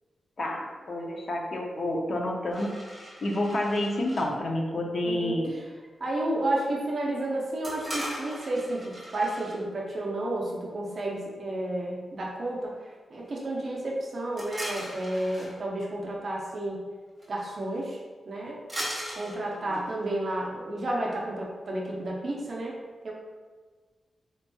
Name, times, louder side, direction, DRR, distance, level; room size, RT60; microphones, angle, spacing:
voice 1, 0.4-2.7 3.0-5.6 19.7-19.8, left 1 dB, 45° left, 0 dB, 0.5 m, -29 dB
sound 1, 2.5-4.3 7.6-9.6 14.4-15.5 17.2-17.3 17.5-17.8 18.7-20.1, equal, ahead, 1.0 m, -38 dB
voice 2, 5.0-5.6 6.0-12.7 13.1-16.8 17.3-18.0 18.3-18.6 19.1-22.7 23.0-23.1, right 1 dB, 45° right, -3 dB, 0.5 m, -31 dB
4.3 x 2.8 x 2.2 m, 1.4 s
wide cardioid pair, 150°, 0 cm